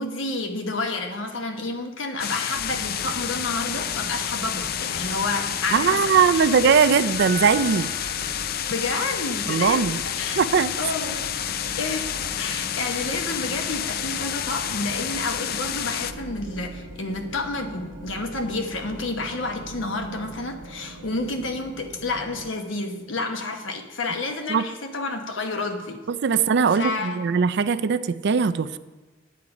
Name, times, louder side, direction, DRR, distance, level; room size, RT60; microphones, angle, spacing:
voice 1, 0.0-6.5 8.7-9.9 10.2-10.4 10.8-11.2 11.6-26.0 26.7-27.2, left 2 dB, 75° left, 5 dB, 1.1 m, -30 dB
sound 1, 2.2-16.1, left 10 dB, 50° left, 0.4 m, -29 dB
sound 2, 2.5-22.5, right 1 dB, 80° right, 1.2 m, -42 dB
voice 2, 5.7-7.9 9.5-10.0 10.4-10.7 24.5-24.7 26.1-28.8, right 6 dB, 60° right, 14 dB, 0.4 m, -20 dB
Piano, 7.2-9.3, right 2 dB, 30° right, 1.4 m, -38 dB
9.3 x 8.3 x 4.9 m, 1.2 s
head